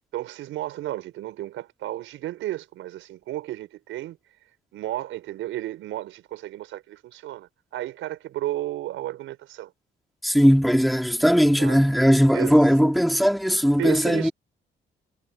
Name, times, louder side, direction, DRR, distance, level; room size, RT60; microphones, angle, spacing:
voice 1, 0.1-4.2 4.7-9.7 11.6-11.8 12.3-12.9 13.8-14.3, right 14 dB, 90° right, 5.7 m, -33 dB
voice 2, 10.2-14.3, equal, ahead, 4.5 m, -19 dB
cardioid pair, 90°, 20 cm